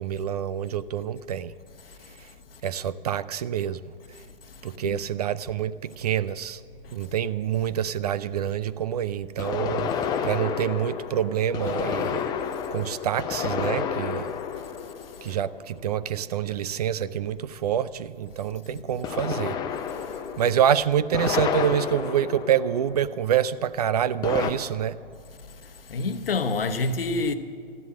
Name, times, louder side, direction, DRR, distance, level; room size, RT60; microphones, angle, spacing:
voice 1, 0.0-1.5 2.6-3.8 4.6-6.6 6.9-9.9 10.2-12.2 12.7-14.3 15.2-19.6 20.4-25.0, right 10 dB, 40° right, 0.4 m, -26 dB
sound 1, 5.5-5.6 9.4-15.9 19.0-23.3 24.2-24.5, left 7 dB, 15° left, 0.6 m, -30 dB
voice 2, 25.9-27.3, left 3 dB, 70° left, 1.1 m, -26 dB
13.5 x 11.0 x 7.5 m
figure-of-eight pair, 120°, 30 cm